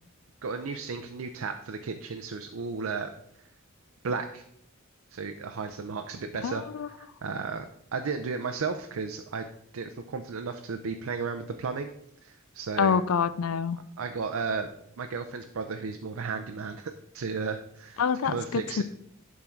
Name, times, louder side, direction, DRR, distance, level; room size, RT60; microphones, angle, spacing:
voice 1, 0.4-3.1 4.0-4.4 5.1-6.6 7.0-9.5 9.7-11.9 12.2-13.0 14.0-14.7 15.0-18.8, right 5 dB, 75° right, 6 dB, 0.5 m, -34 dB
voice 2, 6.4-6.9 12.8-13.8 18.0-18.8, left 6 dB, 80° left, 15 dB, 0.4 m, -26 dB
11.0 x 3.7 x 4.5 m, 0.72 s
head